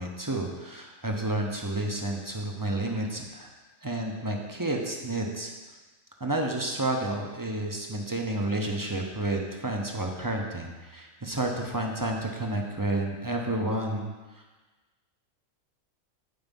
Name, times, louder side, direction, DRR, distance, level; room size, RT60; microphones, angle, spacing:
voice 1, 0.0-3.5 3.8-5.5 6.2-14.1, right 2 dB, 20° right, 1 dB, 0.7 m, -30 dB
9.5 x 4.6 x 5.4 m, 1.2 s
omnidirectional pair, 1.4 m